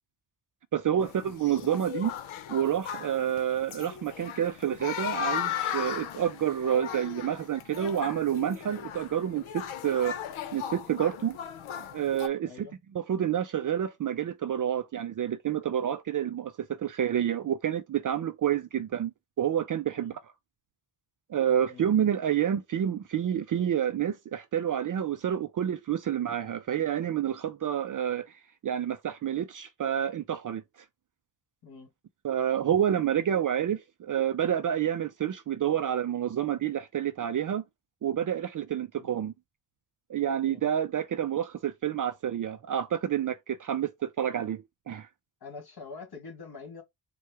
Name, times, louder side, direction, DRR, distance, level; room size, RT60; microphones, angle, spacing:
voice 1, 0.7-2.1 2.5-10.2 10.5-11.4 11.9-12.7 12.9-19.1 19.4-20.2 21.3-28.3 28.6-30.6 32.2-37.6 38.0-39.3 40.1-45.1, right 9 dB, 45° right, 0.4 m, -29 dB
sound 1, 1.0-12.3, left 9 dB, 85° left, 0.8 m, -37 dB
voice 2, 12.4-12.8 20.0-20.2 21.7-21.9 31.6-31.9 39.0-39.1 40.4-40.6 45.4-46.8, left 4 dB, 50° left, 1.9 m, -45 dB
4.5 x 2.2 x 4.7 m
wide cardioid pair, 140°, 48 cm